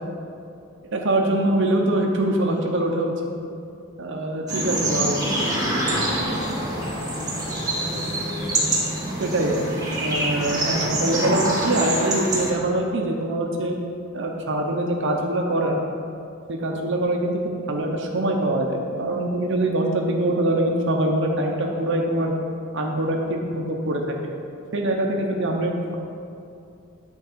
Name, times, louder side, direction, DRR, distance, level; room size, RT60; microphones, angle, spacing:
voice 1, 0.9-3.1 4.0-5.2 9.2-13.7 14.1-15.8 16.5-17.4 17.7-22.3 22.7-24.2 24.7-26.0, right 1 dB, 65° right, 1 dB, 0.9 m, -23 dB
sound 1, 4.5-12.5, right 1 dB, 20° right, 2.4 m, -25 dB
voice 2, 4.7-8.3, left 1 dB, 15° left, -7 dB, 2.3 m, -38 dB
9.6 x 4.7 x 6.8 m, 2.6 s
head